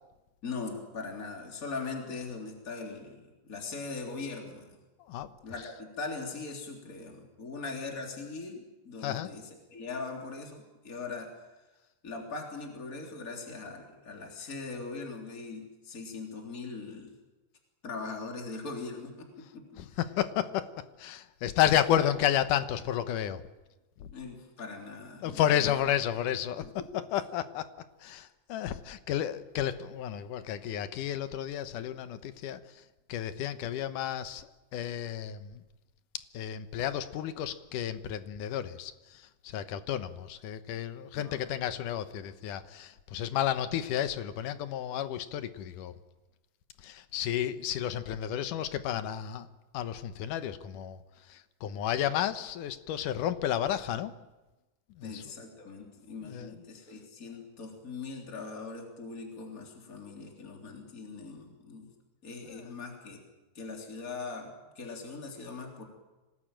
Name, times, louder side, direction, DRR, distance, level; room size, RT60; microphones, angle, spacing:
voice 1, 0.4-4.8 5.4-11.3 12.0-17.1 17.8-20.0 22.0-22.1 24.1-25.8 26.6-26.9 41.1-41.4 55.0-61.9 62.2-63.2 63.6-65.8, left 4 dB, 25° left, 1 dB, 3.7 m, -41 dB
voice 2, 19.8-20.7 21.0-23.4 24.0-24.1 25.2-26.7 26.9-27.7 28.0-32.6 33.1-35.6 36.3-45.9 46.8-49.5 49.7-51.0 51.3-54.1 55.0-55.2 55.8-55.9 56.2-56.5 62.5-62.6, left 11 dB, 80° left, 11 dB, 2.6 m, -32 dB
26.0 x 18.5 x 9.0 m, 1.1 s
omnidirectional pair, 3.7 m